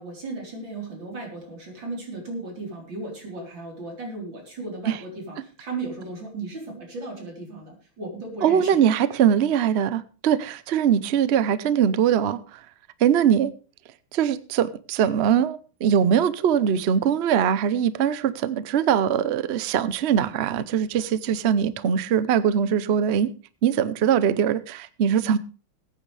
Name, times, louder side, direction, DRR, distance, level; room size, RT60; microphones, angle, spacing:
voice 1, 0.0-8.8, right 2 dB, 65° right, 4.7 m, -36 dB
voice 2, 8.4-12.4 13.0-13.5 14.1-23.3 23.6-25.4, right 8 dB, 90° right, 0.5 m, -22 dB
21.0 x 9.1 x 3.3 m
omnidirectional pair, 2.2 m